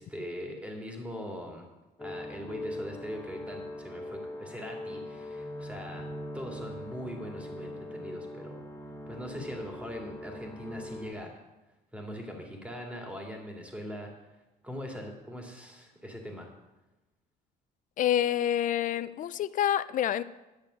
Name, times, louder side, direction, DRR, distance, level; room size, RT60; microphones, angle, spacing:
voice 1, 0.0-1.6 2.0-8.6 9.1-11.3 11.9-14.1 14.6-16.5, equal, 5° right, 1 dB, 2.2 m, -41 dB
sound 1, 2.0-11.1, left 1 dB, 10° left, 0.9 m, -41 dB
voice 2, 18.0-20.2, left 11 dB, 50° left, 16 dB, 0.4 m, -27 dB
10.5 x 6.5 x 6.3 m, 1.0 s
cardioid pair, 110°, 17 cm